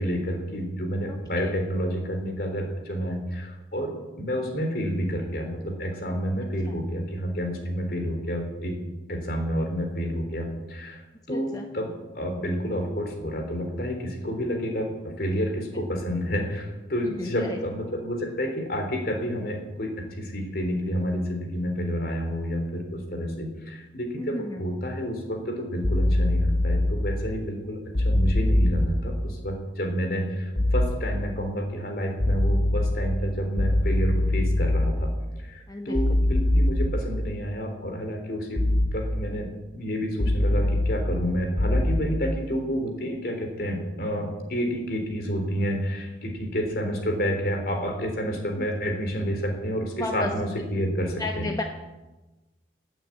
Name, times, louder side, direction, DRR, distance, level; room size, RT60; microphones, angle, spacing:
voice 1, 0.0-8.8 9.1-11.0 11.3-35.1 35.4-38.7 38.9-39.5 39.7-51.5, equal, 55° left, 4 dB, 3.6 m, -29 dB
voice 2, 11.3-11.6 15.2-15.4 17.0-17.6 24.2-24.6 35.7-36.2 48.6-48.7 50.0-50.3 51.2-51.6, left 2 dB, 20° left, 3 dB, 1.0 m, -33 dB
sound 1, 25.8-26.8 27.9-28.9 30.6-30.9 32.2-32.9 33.6-34.8 35.9-36.9 38.6-38.9 40.2-40.9 41.6-41.9, left 1 dB, 85° left, 2.9 m, -22 dB
17.5 x 9.1 x 8.6 m, 1.1 s
head